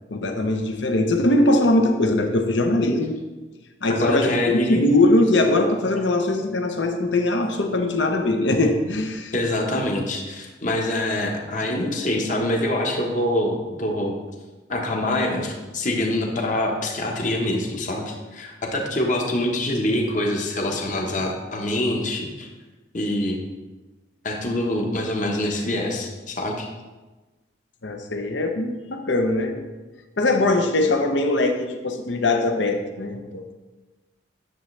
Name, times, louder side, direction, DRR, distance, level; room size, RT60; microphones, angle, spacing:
voice 1, 0.1-3.1 3.8-9.3 27.8-29.7 30.2-33.5, left 2 dB, 65° left, 5 dB, 0.8 m, -21 dB
voice 2, 3.9-4.9 9.3-14.1 14.7-22.5 22.9-23.4 24.2-26.7, left 1 dB, 40° left, 1 dB, 1.2 m, -25 dB
10.0 x 7.1 x 3.3 m, 1.2 s
head